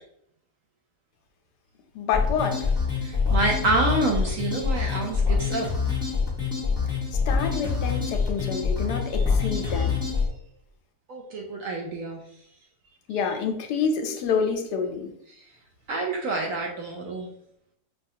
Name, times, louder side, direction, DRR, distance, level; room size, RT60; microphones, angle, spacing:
voice 1, 1.9-2.7 7.3-10.0 13.1-15.1, left 6 dB, 80° left, 5 dB, 1.1 m, -28 dB
sound 1, 2.1-10.3, left 5 dB, 5° right, 0.7 m, -25 dB
voice 2, 3.0-5.7 8.2-8.3 9.6-9.9 11.1-12.2 15.3-15.4 15.9-17.3, right 2 dB, 70° right, 0 dB, 0.8 m, -28 dB
5.3 x 2.3 x 2.7 m, 0.72 s
omnidirectional pair, 1.8 m